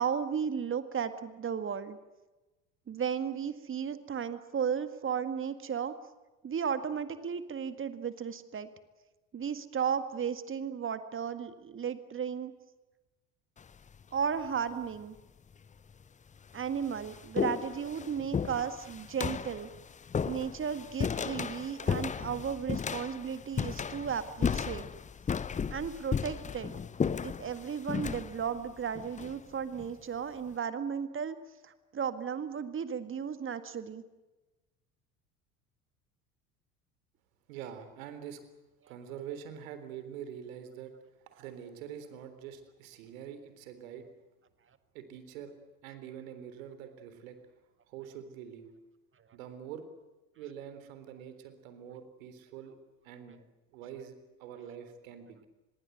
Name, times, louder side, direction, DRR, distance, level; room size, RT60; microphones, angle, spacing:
voice 1, 0.0-2.0 2.9-5.9 6.4-8.7 9.3-12.5 14.1-15.2 16.5-19.7 20.3-24.9 25.7-26.7 27.2-31.4 31.6-34.0, right 7 dB, 25° right, 11 dB, 1.8 m, -34 dB
sound 1, 13.6-14.0 15.0-15.1 15.9-16.0 16.4-29.9, left 6 dB, 15° left, 0.8 m, -35 dB
voice 2, 37.5-38.4 38.9-40.9 41.3-44.1 44.9-45.5 45.8-47.4 47.9-48.7 49.3-49.8 50.4-52.8 53.0-53.4 53.7-55.4, right 9 dB, 60° right, 10 dB, 3.8 m, -45 dB
25.5 x 21.5 x 8.1 m, 1.1 s
figure-of-eight pair, 70°, 45 cm